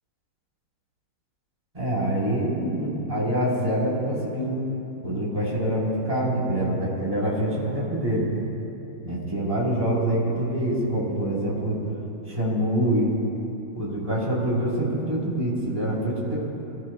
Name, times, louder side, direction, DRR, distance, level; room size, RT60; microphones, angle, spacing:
voice 1, 1.7-4.6 5.0-8.3 9.0-11.8 12.3-13.1 13.7-16.4, right 1 dB, 15° right, -6 dB, 4.2 m, -25 dB
25.0 x 18.0 x 2.3 m, 3.0 s
omnidirectional pair, 2.2 m